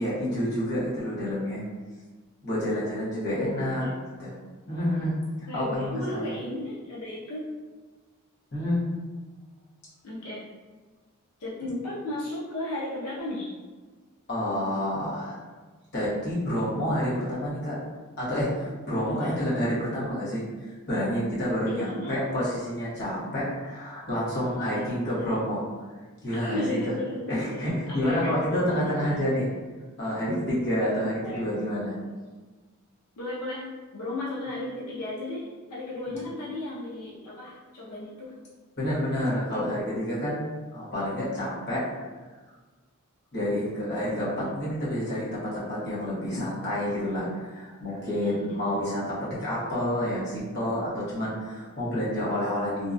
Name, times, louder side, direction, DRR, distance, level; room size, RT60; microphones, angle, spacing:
voice 1, 0.0-1.6 2.4-3.9 4.2-4.3 4.7-5.1 5.5-6.3 8.5-8.8 14.3-15.4 15.9-17.8 18.2-20.4 20.9-25.6 26.2-26.8 27.3-29.5 30.0-32.0 36.1-36.2 38.8-41.9 43.3-52.9, equal, 45° left, -9 dB, 0.9 m, -29 dB
voice 2, 3.4-3.9 5.5-7.4 10.0-10.4 11.4-13.5 19.0-19.4 21.7-22.2 24.6-25.4 26.4-29.3 31.2-31.5 33.2-38.3 48.0-48.6, left 1 dB, 85° left, -6 dB, 0.5 m, -35 dB
2.6 x 2.2 x 2.4 m, 1.3 s
head